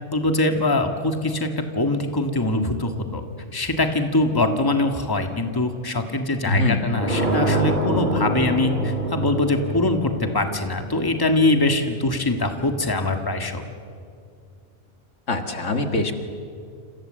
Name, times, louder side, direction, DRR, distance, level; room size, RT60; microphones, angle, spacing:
voice 1, 0.1-3.2 3.5-13.6, left 2 dB, 20° left, 5 dB, 1.7 m, -23 dB
voice 2, 6.5-6.9 15.3-16.1, left 2 dB, 80° left, 6 dB, 2.1 m, -23 dB
sound 1, 6.9-11.6, right 1 dB, 40° right, 5.3 m, -25 dB
28.0 x 27.5 x 7.7 m, 2.5 s
omnidirectional pair, 1.3 m